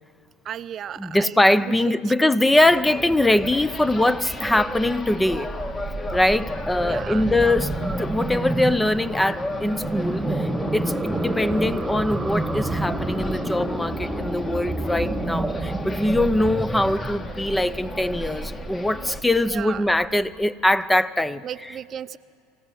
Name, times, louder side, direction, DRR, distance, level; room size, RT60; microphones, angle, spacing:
voice 1, 0.4-1.4 1.8-2.3 6.8-7.3 19.5-19.9 21.4-22.2, right 9 dB, 40° right, 0.5 m, -35 dB
voice 2, 1.0-5.5 6.1-21.8, left 1 dB, 10° left, 0.6 m, -22 dB
sound 1, 2.5-19.2, left 2 dB, 25° left, 1.7 m, -35 dB
sound 2, 2.6-20.4, right 2 dB, 10° right, 1.3 m, -30 dB
26.0 x 16.0 x 7.5 m
hypercardioid pair, 85°, 0 cm